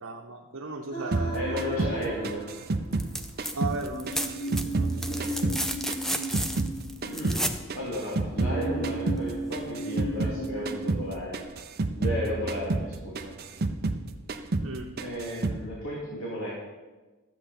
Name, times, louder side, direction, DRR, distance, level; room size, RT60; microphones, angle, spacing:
voice 1, 0.0-1.4 3.5-5.4 14.6-14.9, right 2 dB, 85° right, -1 dB, 0.9 m, -37 dB
sound 1, 0.9-3.1 3.9-7.6 8.4-11.1, right 1 dB, 30° left, 4.1 m, -36 dB
sound 2, 1.1-3.8 4.1-6.8 7.0-10.4 10.6-11.1 11.3-14.0 14.3-14.7 15.0-15.6, right 2 dB, 45° right, 0.7 m, -30 dB
voice 2, 1.3-2.5 4.9-5.6 7.1-11.4 11.9-13.3 15.0-16.5, equal, 80° left, -5 dB, 2.6 m, -34 dB
sound 3, 2.9-3.5 3.8-7.6 9.3-9.4, equal, ahead, 0.4 m, -32 dB
12.5 x 8.0 x 5.4 m, 1.2 s
head